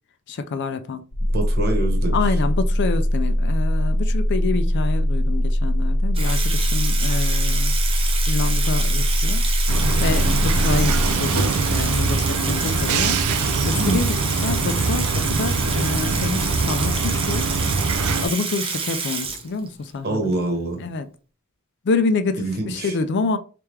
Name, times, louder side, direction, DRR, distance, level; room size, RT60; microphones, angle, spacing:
voice 1, 0.3-1.1 2.1-7.8 8.3-9.4 10.0-13.2 13.6-17.5 18.2-20.3 20.8-21.1 21.8-23.4, left 4 dB, 50° left, 0.4 m, -27 dB
sound 1, 1.1-11.1, equal, 20° left, 0.7 m, -21 dB
voice 2, 1.3-2.2 13.8-14.0 20.0-20.8 22.4-22.9, right 2 dB, 45° right, 1.2 m, -25 dB
Water tap faucet / Sink (filling or washing), 6.2-19.9, right 5 dB, 25° right, 0.6 m, -28 dB
sound 2, 9.7-18.3, right 3 dB, 90° right, 0.5 m, -23 dB
3.4 x 3.3 x 3.2 m
head